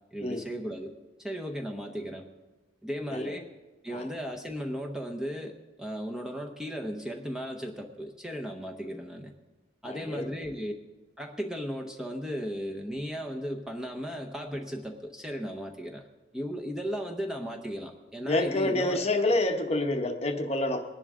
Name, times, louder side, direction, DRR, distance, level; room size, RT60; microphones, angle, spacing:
voice 1, 0.1-2.3 2.8-3.5 3.8-9.3 9.8-10.7 11.2-16.0 16.3-19.0, equal, 5° right, 2 dB, 0.8 m, -36 dB
voice 2, 9.8-10.3 18.3-20.8, left 2 dB, 30° left, 5 dB, 0.9 m, -28 dB
20.5 x 11.0 x 3.7 m, 1.1 s
head